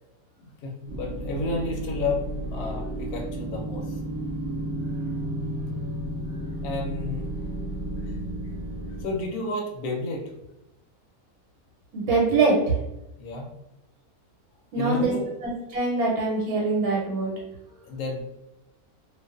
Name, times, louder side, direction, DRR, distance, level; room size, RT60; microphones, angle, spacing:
voice 1, 0.4-2.2 2.5-4.0 6.6-7.3 8.0-8.2 9.0-10.3 13.2-13.4 14.8-15.3 17.7-18.2, left 2 dB, 85° left, 1 dB, 1.1 m, -31 dB
sound 1, 0.9-9.0, right 1 dB, 45° right, 0.7 m, -32 dB
voice 2, 11.9-12.7 14.7-15.1 15.4-17.3, right 3 dB, 85° right, -3 dB, 1.1 m, -23 dB
2.4 x 2.3 x 2.3 m, 0.89 s
omnidirectional pair, 1.5 m